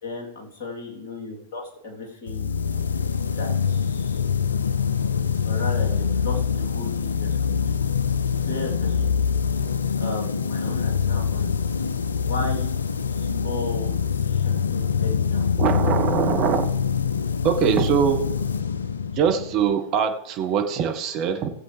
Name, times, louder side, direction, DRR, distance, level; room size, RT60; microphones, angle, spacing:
voice 1, 0.0-2.5 3.2-4.2 5.5-7.8 8.4-9.1 10.0-11.6 12.1-12.7 13.1-15.5, left 2 dB, 50° left, -1 dB, 3.6 m, -35 dB
sound 1, 2.3-19.8, left 6 dB, 75° left, 0.6 m, -24 dB
voice 2, 15.6-16.7 17.4-18.2 19.2-21.5, right 8 dB, 40° right, 5 dB, 1.6 m, -22 dB
19.5 x 7.7 x 3.4 m, 0.89 s
figure-of-eight pair, 100°, 0 cm